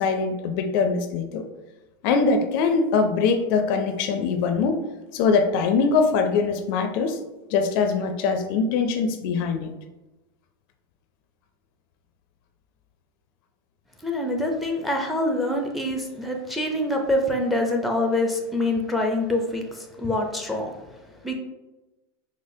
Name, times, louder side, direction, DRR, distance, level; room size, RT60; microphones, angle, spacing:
voice 1, 0.0-1.4 2.0-4.8 5.1-7.2 7.5-9.7, left 5 dB, 60° left, 7 dB, 0.4 m, -22 dB
voice 2, 14.0-20.7 21.2-21.3, left 1 dB, ahead, 2 dB, 0.5 m, -25 dB
4.9 x 2.0 x 2.6 m, 1.1 s
supercardioid pair, 120°, 13 cm